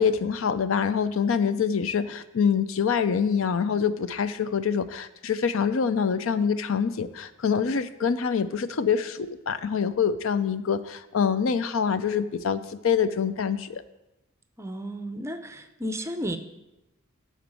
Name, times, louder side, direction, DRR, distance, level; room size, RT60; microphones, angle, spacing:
voice 1, 0.0-13.8, left 6 dB, 75° left, 13 dB, 0.5 m, -25 dB
voice 2, 14.6-16.4, equal, 15° right, 8 dB, 0.6 m, -33 dB
11.0 x 4.0 x 7.6 m, 0.95 s
head